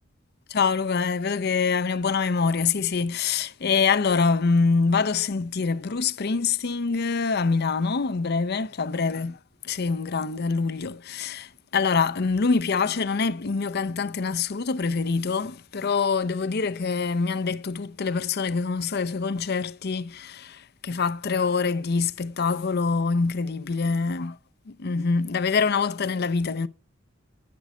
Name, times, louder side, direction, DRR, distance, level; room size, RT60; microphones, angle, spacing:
voice 1, 0.5-9.4 9.6-24.4 24.7-26.7, left 5 dB, 55° left, 0.6 m, -25 dB
10.5 x 9.5 x 4.9 m
head